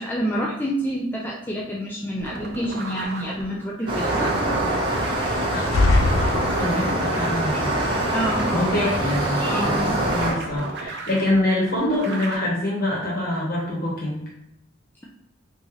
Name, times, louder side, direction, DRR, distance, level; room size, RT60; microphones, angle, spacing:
voice 1, 0.0-4.3 8.1-8.9 9.4-10.0, equal, 10° left, -4 dB, 0.4 m, -28 dB
sound 1, 2.2-12.4, right 3 dB, 60° right, 0.5 m, -37 dB
sound 2, 3.9-10.3, right 1 dB, 25° right, 0.8 m, -24 dB
sound 3, 5.5-7.2, left 2 dB, 85° left, 0.4 m, -22 dB
voice 2, 5.5-7.8 8.5-14.3, left 1 dB, 50° left, -4 dB, 1.3 m, -25 dB
3.8 x 2.6 x 3.0 m, 0.78 s
head